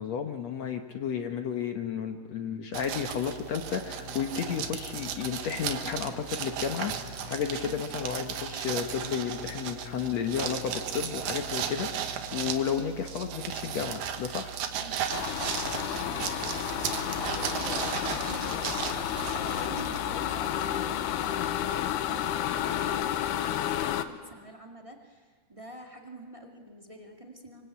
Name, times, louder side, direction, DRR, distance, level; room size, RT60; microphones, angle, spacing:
voice 1, 0.0-14.5, left 7 dB, 65° left, 5 dB, 1.7 m, -32 dB
sound 1, 2.7-20.2, right 8 dB, 65° right, 2.7 m, -36 dB
sound 2, 3.6-17.4, left 3 dB, 25° left, 4.1 m, -49 dB
sound 3, 15.1-24.0, left 11 dB, 90° left, 3.0 m, -31 dB
voice 2, 15.6-27.7, right 1 dB, 25° right, 1 dB, 0.6 m, -47 dB
25.5 x 24.5 x 8.5 m, 1.5 s
omnidirectional pair, 4.5 m